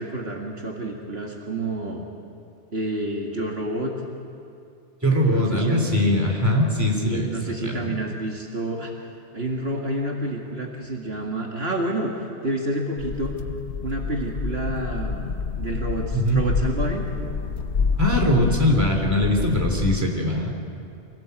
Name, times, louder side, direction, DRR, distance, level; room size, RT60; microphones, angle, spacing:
voice 1, 0.0-2.0 2.7-3.9 5.3-5.9 7.0-8.9 9.3-13.3 13.8-15.3 15.6-17.1, right 1 dB, 60° right, 0 dB, 2.3 m, -29 dB
voice 2, 5.0-7.3 7.6-8.0 16.1-16.4 18.0-20.5, left 1 dB, 15° right, 0 dB, 3.4 m, -21 dB
sound 1, 13.0-20.0, left 5 dB, 70° left, 1.3 m, -28 dB
25.5 x 18.0 x 8.1 m, 2.5 s
omnidirectional pair, 1.1 m